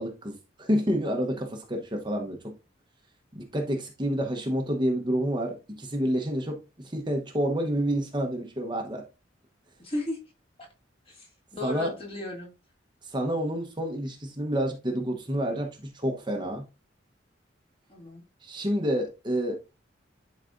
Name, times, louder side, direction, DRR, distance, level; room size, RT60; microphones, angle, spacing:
voice 1, 0.0-2.5 3.3-6.6 6.8-9.0 11.6-11.9 13.0-16.6 18.4-19.5, equal, 25° right, 0.9 m, -29 dB
voice 2, 9.8-10.2 10.6-10.7 11.1-12.5 17.9-18.2, left 2 dB, 30° left, 2.3 m, -35 dB
11.0 x 4.1 x 2.5 m
head